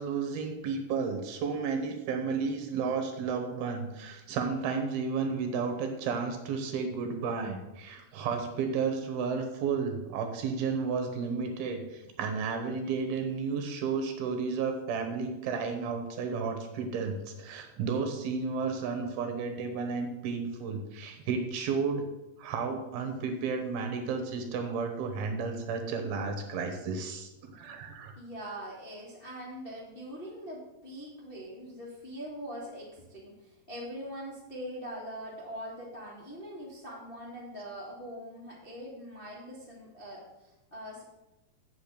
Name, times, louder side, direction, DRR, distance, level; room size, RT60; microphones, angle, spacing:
voice 1, 0.0-22.0 22.4-28.1, right 5 dB, 70° right, 5 dB, 2.8 m, -32 dB
voice 2, 28.1-41.0, equal, 65° left, -5 dB, 0.5 m, -42 dB
9.0 x 5.7 x 6.7 m, 0.97 s
omnidirectional pair, 4.8 m